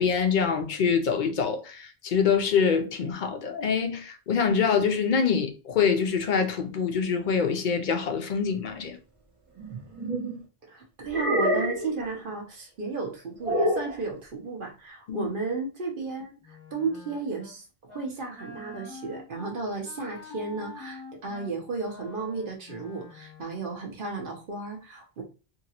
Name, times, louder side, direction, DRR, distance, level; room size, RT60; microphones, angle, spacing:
voice 1, 0.0-9.0 15.1-15.3, left 6 dB, 55° left, 0.6 m, -25 dB
sound 1, 9.6-10.4 11.1-12.0 13.4-14.0, equal, 35° right, 0.7 m, -27 dB
voice 2, 10.7-25.2, right 4 dB, 55° right, 1.0 m, -34 dB
Wind instrument woodwind instrument, 16.4-17.6 17.9-18.1 18.4-23.6, left 3 dB, 30° left, 0.9 m, -46 dB
2.9 x 2.8 x 2.8 m
omnidirectional pair, 1.1 m